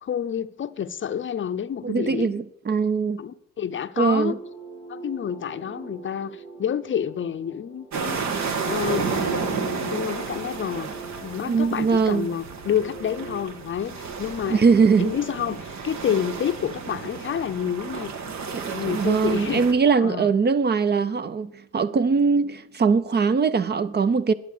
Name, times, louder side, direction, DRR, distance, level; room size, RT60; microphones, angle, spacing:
voice 1, 0.0-2.4 3.2-4.4 4.9-8.2 8.6-10.9 11.2-14.6 15.0-18.1 18.7-19.6 20.0-20.3, left 9 dB, 40° left, 0.6 m, -29 dB
voice 2, 1.8-3.2 4.0-4.4 11.5-12.3 14.5-15.1 18.5-24.3, right 5 dB, 35° right, 0.6 m, -21 dB
sound 1, 4.3-13.4, right 3 dB, 85° right, 3.2 m, -42 dB
sound 2, 7.9-19.7, right 5 dB, 65° right, 1.6 m, -32 dB
11.5 x 7.7 x 6.6 m
cardioid pair, 90°, 30 cm